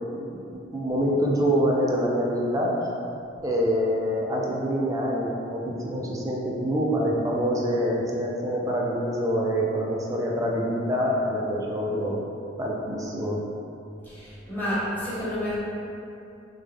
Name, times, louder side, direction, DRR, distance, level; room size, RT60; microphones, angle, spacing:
voice 1, 0.1-2.7 3.4-12.2 12.6-13.4, equal, 20° right, -3 dB, 0.3 m, -26 dB
voice 2, 14.0-15.6, left 1 dB, 10° left, -11 dB, 0.9 m, -30 dB
3.4 x 2.1 x 3.3 m, 2.7 s
head